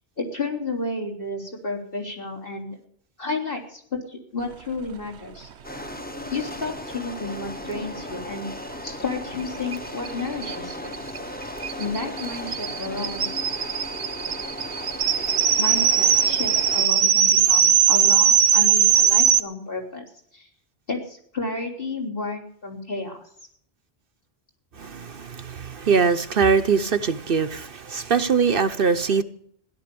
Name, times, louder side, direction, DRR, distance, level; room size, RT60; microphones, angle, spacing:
voice 1, 0.2-2.8 3.2-5.5 6.3-8.5 8.8-11.0 11.8-13.3 15.6-20.0 20.3-20.5 20.9-23.3, left 3 dB, 55° left, 3.6 m, -31 dB
sound 1, 5.6-16.9, left 1 dB, 10° left, 1.1 m, -36 dB
sound 2, 9.7-9.8 10.0-10.1 10.4-19.4, right 8 dB, 80° right, 1.1 m, -20 dB
voice 2, 24.8-29.2, right 5 dB, 60° right, 1.0 m, -22 dB
16.5 x 11.5 x 6.9 m
omnidirectional pair, 1.1 m